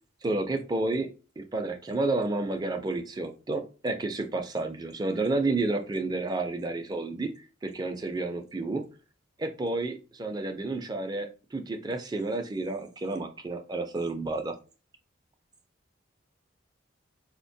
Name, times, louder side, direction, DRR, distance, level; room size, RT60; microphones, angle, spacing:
voice 1, 0.2-1.1 1.4-7.3 7.6-8.8 9.4-14.5, right 2 dB, 20° right, 6 dB, 0.4 m, -30 dB
4.3 x 2.1 x 2.6 m, 0.35 s
head